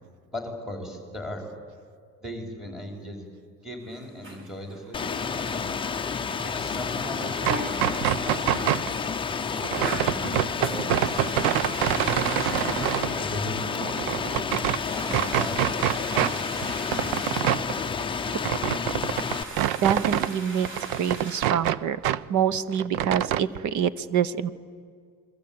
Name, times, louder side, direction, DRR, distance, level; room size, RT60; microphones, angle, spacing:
voice 1, 0.3-1.4 2.2-3.3 3.6-5.7 6.4-9.0 9.7-11.1 12.1-14.0 14.7-16.3, left 1 dB, ahead, 2 dB, 4.7 m, -38 dB
sound 1, 3.8-21.5, right 1 dB, 35° right, 4.1 m, -40 dB
Rain, 4.9-19.4, left 5 dB, 15° left, 0.7 m, -30 dB
sound 2, 7.3-8.9 9.6-13.1 13.5-14.8 15.1-16.3 16.6-20.3 20.6-22.2 22.5-23.4, right 12 dB, 75° right, 0.8 m, -26 dB
voice 2, 19.8-20.7 21.0-22.0 22.3-24.5, right 8 dB, 50° right, 16 dB, 1.1 m, -26 dB
28.5 x 22.5 x 8.8 m, 2.1 s
cardioid pair, 170°, 37 cm